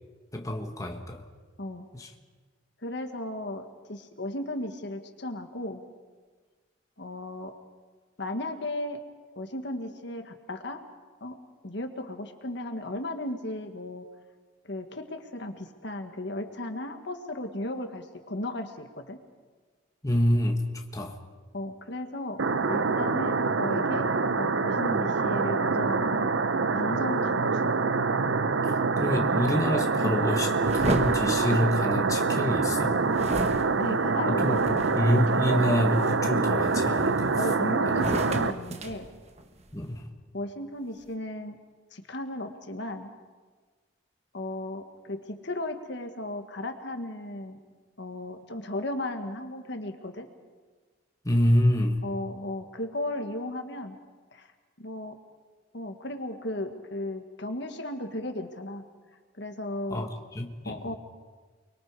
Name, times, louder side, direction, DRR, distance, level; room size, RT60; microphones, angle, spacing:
voice 1, 0.3-1.3 1.9-2.1 20.0-21.2 28.6-33.0 34.3-37.4 37.8-38.1 39.7-40.1 51.2-52.0 59.9-60.9, left 1 dB, 15° left, 2 dB, 1.6 m, -27 dB
voice 2, 2.8-5.8 7.0-7.5 8.2-9.0 9.4-10.8 11.2-11.4 11.6-14.1 14.6-19.2 21.5-22.4 22.7-24.1 24.4-26.3 26.7-27.7 33.8-34.8 37.3-39.1 40.3-41.6 41.9-43.1 44.3-47.6 48.0-50.3 52.0-54.0 54.3-54.5 54.8-55.2 55.7-58.8 59.4-60.1 60.6-61.0, left 1 dB, 65° left, 6 dB, 1.6 m, -35 dB
sound 1, 22.4-38.5, right 4 dB, 75° right, 0.7 m, -25 dB
sound 2, 30.6-32.3 33.1-35.2 35.7-36.1 36.7-37.5 37.9-39.8, right 1 dB, 35° right, 1.3 m, -34 dB
29.5 x 22.5 x 4.8 m, 1.4 s
head